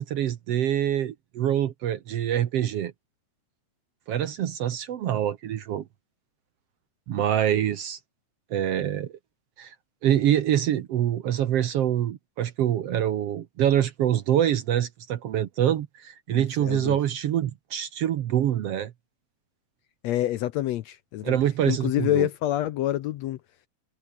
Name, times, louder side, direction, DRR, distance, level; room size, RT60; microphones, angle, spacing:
voice 1, 0.0-2.9 4.1-5.8 7.1-8.0 8.5-9.1 9.6-9.8 10.0-18.9 21.2-22.3, right 11 dB, 65° right, 1.8 m, -25 dB
voice 2, 16.3-17.0 20.0-21.4 21.7-23.4, left 13 dB, 70° left, 1.7 m, -27 dB
omnidirectional pair, 3.6 m